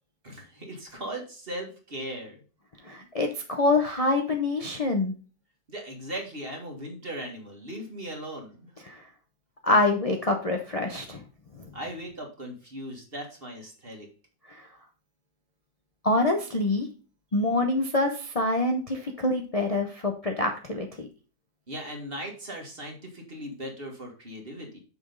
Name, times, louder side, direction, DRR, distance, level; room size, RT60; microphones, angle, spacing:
voice 1, 0.2-2.4 5.7-8.7 11.7-14.1 21.7-24.8, right 1 dB, 30° right, 2 dB, 1.8 m, -38 dB
voice 2, 2.8-5.1 8.9-9.0 9.6-11.2 14.5-14.6 16.0-16.9 17.3-21.1, left 2 dB, 50° left, 2 dB, 0.4 m, -25 dB
6.7 x 5.4 x 3.9 m, 0.37 s
omnidirectional pair, 2.0 m